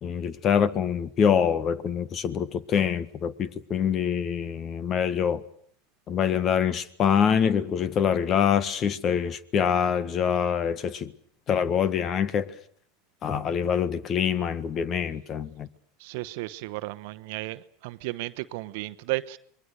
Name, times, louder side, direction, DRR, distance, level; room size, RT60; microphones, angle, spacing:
voice 1, 0.0-5.4 6.1-11.1 11.5-12.5 13.2-15.7, left 7 dB, 40° left, 1.5 m, -25 dB
voice 2, 16.0-19.4, right 19 dB, 65° right, 1.0 m, -34 dB
27.0 x 22.0 x 6.6 m
hypercardioid pair, 90°, 0 cm